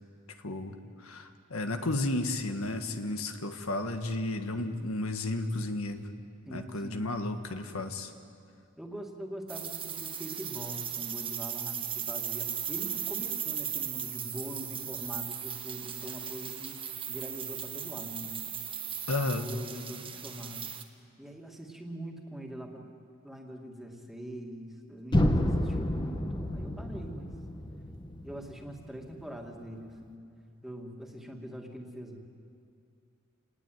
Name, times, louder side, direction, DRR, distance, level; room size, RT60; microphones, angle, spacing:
voice 1, 0.4-6.1 6.5-8.1 19.1-19.4, left 2 dB, 90° left, 6 dB, 1.6 m, -33 dB
voice 2, 6.5-7.2 8.8-16.7 17.1-18.4 19.2-20.6 21.2-22.9 23.2-27.3 28.2-30.2 30.6-32.2, equal, ahead, 1 dB, 2.4 m, -43 dB
sound 1, 9.5-20.8, right 8 dB, 25° right, 1.4 m, -37 dB
sound 2, 25.1-29.1, left 1 dB, 20° left, 1.3 m, -30 dB
28.0 x 19.5 x 9.2 m, 2.5 s
head